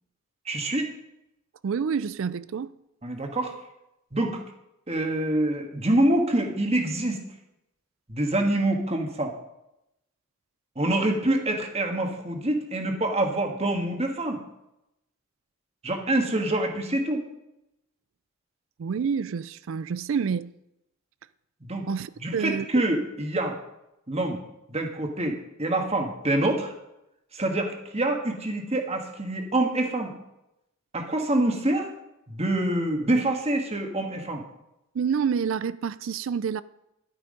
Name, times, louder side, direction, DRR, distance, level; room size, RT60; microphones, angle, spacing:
voice 1, 0.4-0.9 3.0-3.5 4.1-4.4 4.9-7.2 8.1-9.3 10.7-14.4 15.8-17.2 21.6-21.8 22.2-23.6 24.1-24.4 24.7-26.7 27.3-30.1 30.9-31.9 32.3-34.4, right 1 dB, 30° right, 1.6 m, -26 dB
voice 2, 1.6-2.7 18.8-20.5 21.9-22.7 34.9-36.6, right 6 dB, 65° right, 0.4 m, -28 dB
12.0 x 9.1 x 5.3 m
head